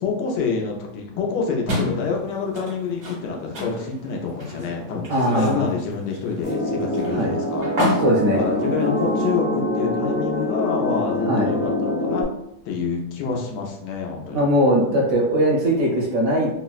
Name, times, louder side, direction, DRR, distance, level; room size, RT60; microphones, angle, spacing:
voice 1, 0.0-7.9 8.3-12.3 12.6-14.5, left 5 dB, 80° left, 1 dB, 1.3 m, -27 dB
sound 1, 1.7-9.4, left 1 dB, 85° right, 1.7 m, -31 dB
voice 2, 5.1-5.6 7.1-7.3 8.0-8.4 11.3-11.5 14.3-16.5, equal, 65° right, -2 dB, 0.9 m, -20 dB
sound 2, 6.4-12.2, left 1 dB, 45° left, 1.0 m, -24 dB
4.1 x 2.0 x 2.3 m, 0.81 s
omnidirectional pair, 1.9 m